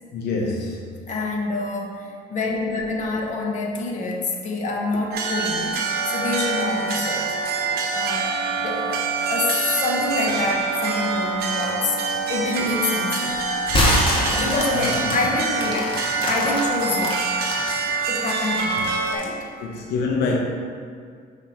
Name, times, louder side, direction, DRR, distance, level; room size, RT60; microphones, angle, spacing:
voice 1, 0.1-1.0 14.4-15.2 18.7-18.9 19.6-20.4, left 3 dB, 80° left, -1 dB, 0.8 m, -27 dB
voice 2, 1.0-7.4 7.9-12.0 12.3-13.5 14.1-16.0 16.3-17.3 18.1-19.4, left 3 dB, 45° left, 0 dB, 1.1 m, -27 dB
sound 1, 5.1-19.1, right 4 dB, 65° right, 0.8 m, -25 dB
sound 2, 13.6-17.6 18.1-19.4, left 1 dB, 30° left, 1.4 m, -24 dB
6.1 x 3.5 x 5.6 m, 2.1 s
cardioid pair, 110°, 17 cm